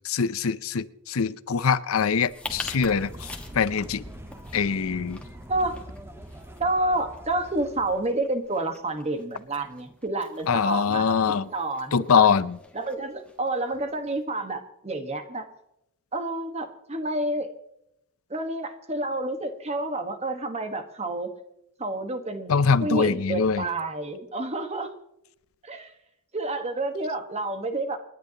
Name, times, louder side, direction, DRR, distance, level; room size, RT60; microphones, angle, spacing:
voice 1, 0.0-4.0 4.5-5.2 10.5-11.5 11.9-12.6 22.5-23.6, left 6 dB, 70° left, 16 dB, 0.5 m, -23 dB
sound 1, 2.1-14.2, left 2 dB, 5° left, 1.6 m, -46 dB
sound 2, 2.4-8.1, equal, 10° right, 1.3 m, -43 dB
voice 2, 5.5-5.8 6.6-11.2 11.5-12.3 12.7-15.5 16.1-17.5 18.3-21.3 21.8-24.9 25.6-25.9 26.3-28.0, right 2 dB, 30° right, 7 dB, 1.4 m, -29 dB
28.5 x 11.0 x 2.9 m, 0.80 s
head